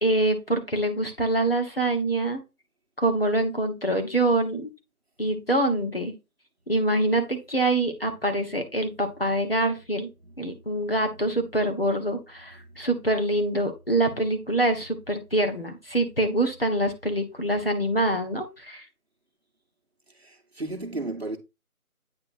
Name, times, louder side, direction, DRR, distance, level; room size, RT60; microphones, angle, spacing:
voice 1, 0.0-2.4 3.0-4.7 5.2-6.1 6.7-10.1 10.4-18.9, right 1 dB, 40° left, 1.0 m, -25 dB
voice 2, 10.2-11.4 20.1-21.4, right 2 dB, 45° right, 1.0 m, -36 dB
8.8 x 3.0 x 4.1 m
figure-of-eight pair, 170°, 45 cm